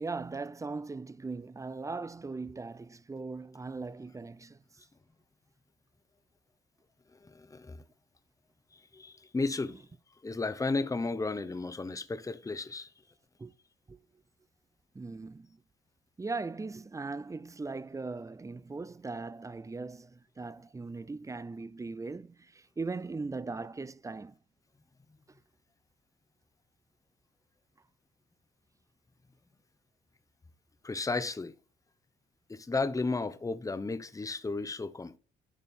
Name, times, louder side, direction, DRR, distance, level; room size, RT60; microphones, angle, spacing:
voice 1, 0.0-4.8 13.4-13.5 13.9-14.0 14.9-15.6 16.2-24.4, right 3 dB, 15° right, 0.4 m, -39 dB
voice 2, 7.2-7.8 8.7-9.8 10.2-12.9 30.8-31.5 32.5-35.2, left 3 dB, 15° left, 0.8 m, -34 dB
11.0 x 5.2 x 4.3 m
cardioid pair, 90°, 20 cm